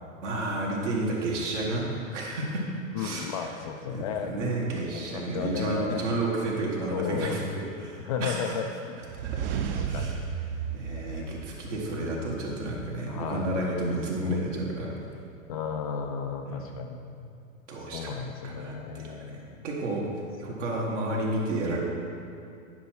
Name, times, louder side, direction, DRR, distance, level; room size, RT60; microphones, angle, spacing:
voice 1, 0.2-2.6 3.0-3.5 3.9-8.6 9.2-10.2 10.5-14.9 16.5-16.7 17.7-18.2 18.4-20.0 20.4-21.8, right 1 dB, 60° right, -2 dB, 2.0 m, -31 dB
voice 2, 2.9-6.0 6.9-7.4 8.1-9.0 9.8-10.2 10.8-11.3 13.1-13.6 14.2-14.4 15.5-17.0 17.8-19.7 20.5-20.9, left 6 dB, 30° left, 4 dB, 0.3 m, -34 dB
sound 1, 9.0-12.0, right 7 dB, 45° right, 0.6 m, -33 dB
10.5 x 6.1 x 4.6 m, 2.6 s
figure-of-eight pair, 95°, 41 cm